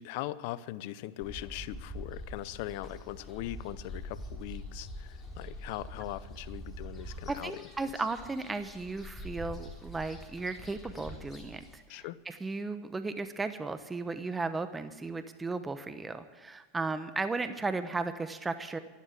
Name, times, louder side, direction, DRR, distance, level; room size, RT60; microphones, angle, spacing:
voice 1, 0.0-7.6 11.9-12.2, left 15 dB, 60° left, 17 dB, 0.6 m, -40 dB
sound 1, 1.2-11.8, left 1 dB, 20° left, 4.0 m, -45 dB
voice 2, 7.3-18.8, right 3 dB, 15° right, 11 dB, 1.0 m, -35 dB
12.5 x 11.5 x 8.3 m, 1.2 s
hypercardioid pair, 100°, 0 cm